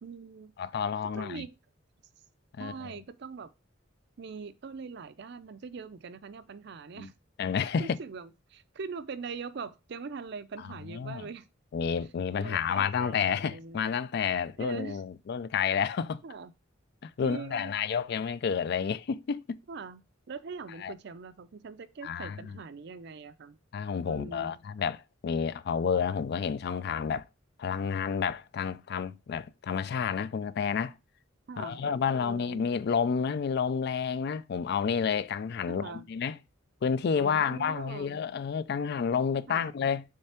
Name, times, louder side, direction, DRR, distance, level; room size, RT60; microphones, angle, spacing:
voice 1, 0.0-0.5 1.1-1.5 2.6-3.5 4.2-7.1 7.8-11.5 12.3-13.8 14.6-15.0 16.2-16.5 17.2-17.7 19.7-20.0 20.3-23.6 24.1-24.6 31.5-32.7 35.7-36.0 37.1-38.2 39.5-39.7, right 5 dB, 60° right, 0.5 m, -42 dB
voice 2, 0.6-1.5 2.5-2.9 6.9-7.1 7.4-8.0 10.9-11.3 11.7-16.2 17.0-19.6 20.8-20.9 22.0-22.5 23.7-27.3 27.6-30.9 31.6-36.4 36.8-40.0, left 6 dB, 55° left, 0.3 m, -30 dB
6.6 x 3.3 x 4.3 m
head